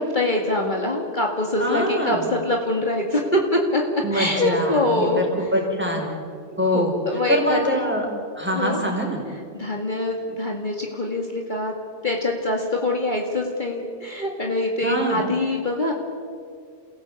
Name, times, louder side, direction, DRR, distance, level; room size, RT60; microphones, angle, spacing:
voice 1, 0.0-3.8 4.1-5.2 6.7-7.6 8.5-8.8 9.5-11.7 12.0-15.9, left 1 dB, 45° left, 0 dB, 2.2 m, -24 dB
voice 2, 1.6-2.3 4.0-6.1 6.6-6.9 7.3-8.0 8.4-9.2 14.8-15.2, equal, 10° right, -1 dB, 4.9 m, -24 dB
28.5 x 17.0 x 8.3 m, 2.3 s
omnidirectional pair, 1.1 m